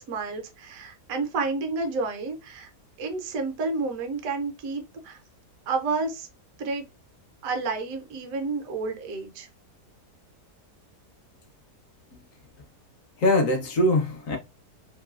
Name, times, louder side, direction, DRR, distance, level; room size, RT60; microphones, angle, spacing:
voice 1, 0.0-2.7 3.0-5.2 5.7-6.3 6.6-6.9 7.4-9.5, right 4 dB, 65° right, 1.0 m, -30 dB
voice 2, 13.2-14.4, left 1 dB, 60° left, 1.0 m, -22 dB
3.0 x 2.7 x 2.3 m
omnidirectional pair, 1.8 m